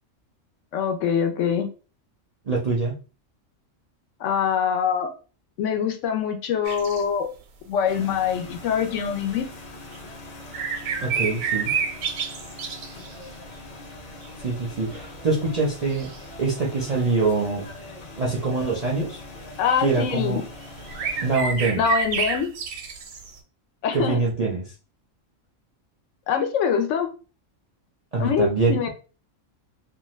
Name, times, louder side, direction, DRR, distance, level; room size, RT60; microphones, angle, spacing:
voice 1, 0.7-1.7 4.2-5.1 5.6-7.3 7.7-9.5 19.6-20.5 21.8-22.5 23.8-24.2 26.3-27.1 28.2-28.9, left 7 dB, 75° left, 6 dB, 0.9 m, -24 dB
voice 2, 2.5-3.0 11.0-11.7 14.3-16.1 16.4-17.7 18.2-19.2 19.8-20.4 21.2-21.8 23.9-24.6 28.1-28.9, right 3 dB, 50° right, -2 dB, 0.5 m, -24 dB
sound 1, 6.7-7.0 9.1-9.2 9.9-10.0 10.5-13.3 14.0-14.4 14.9-15.0 15.9-16.4 17.0-17.3 19.2-19.4 20.5-20.6 20.8-23.4, right 6 dB, 85° right, 1.0 m, -29 dB
sound 2, 7.9-21.4, left 2 dB, 50° left, 0.5 m, -42 dB
2.6 x 2.3 x 3.0 m, 0.35 s
omnidirectional pair, 1.3 m